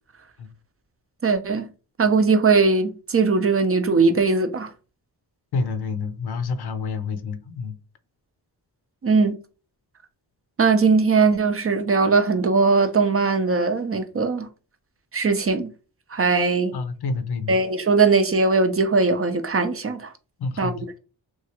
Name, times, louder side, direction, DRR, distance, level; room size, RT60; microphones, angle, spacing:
voice 1, 1.2-1.7 2.0-4.7 9.0-9.3 10.6-14.5 15.1-15.7 16.1-16.8 17.5-20.1 20.6-20.7, right 4 dB, 35° right, 0.5 m, -20 dB
voice 2, 5.5-7.8 16.7-17.6 20.4-20.9, left 4 dB, 70° left, 0.6 m, -28 dB
3.0 x 2.3 x 2.9 m
cardioid pair, 75°, 40 cm